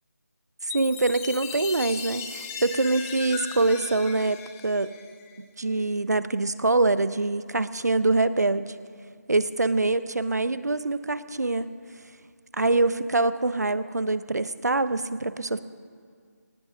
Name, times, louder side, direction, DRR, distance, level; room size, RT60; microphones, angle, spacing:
voice 1, 0.6-4.4 4.6-4.9 5.4-8.8 9.3-11.7 12.6-15.6, right 2 dB, 70° right, 14 dB, 0.8 m, -24 dB
Chime, 0.7-5.4, left 6 dB, 10° left, 0.5 m, -38 dB
20.5 x 18.5 x 2.8 m, 2.1 s
figure-of-eight pair, 160°, 9 cm